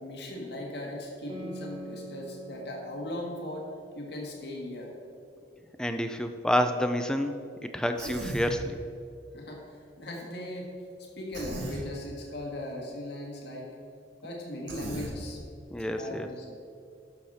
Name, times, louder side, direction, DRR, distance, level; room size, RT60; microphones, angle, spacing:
voice 1, 0.0-3.7 4.0-4.9 9.3-9.6 10.0-10.7 11.2-13.7 14.2-15.4 16.0-16.6, left 1 dB, 65° left, -1 dB, 1.8 m, -38 dB
Guitar, 1.3-6.2, right 1 dB, 30° right, 1.5 m, -46 dB
voice 2, 5.8-8.8 15.7-16.3, equal, 5° left, 7 dB, 0.4 m, -29 dB
Human voice, 8.0-8.6 11.3-11.8 14.7-15.1, right 1 dB, 80° right, 1.8 m, -36 dB
11.5 x 6.5 x 4.3 m, 2.5 s
head